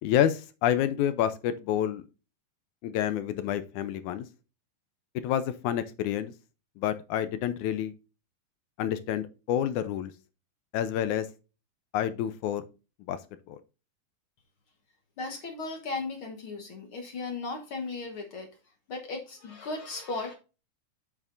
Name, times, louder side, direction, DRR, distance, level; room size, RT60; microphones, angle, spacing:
voice 1, 0.0-2.0 2.8-4.3 5.2-6.3 6.8-7.9 8.8-10.1 10.7-11.3 11.9-12.7 13.1-13.2 13.5-13.6, left 10 dB, 80° left, 1.8 m, -28 dB
voice 2, 15.2-18.6 18.9-20.3, left 3 dB, 60° left, 1.4 m, -36 dB
8.1 x 7.0 x 2.5 m
omnidirectional pair, 3.9 m